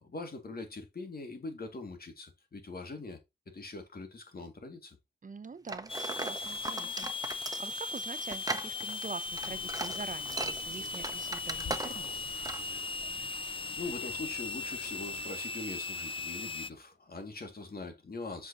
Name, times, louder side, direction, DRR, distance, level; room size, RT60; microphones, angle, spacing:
voice 1, 0.0-3.2 3.5-5.0 13.8-18.5, left 3 dB, 60° left, 2.4 m, -42 dB
voice 2, 5.2-12.3, right 4 dB, 45° right, 0.7 m, -45 dB
sound 1, 5.7-12.2 12.4-12.7, right 2 dB, 20° right, 1.1 m, -38 dB
sound 2, 5.9-16.7, left 3 dB, 30° left, 0.6 m, -38 dB
sound 3, 9.2-15.3, left 5 dB, 85° left, 2.0 m, -50 dB
8.0 x 6.1 x 3.0 m
cardioid pair, 45°, 18 cm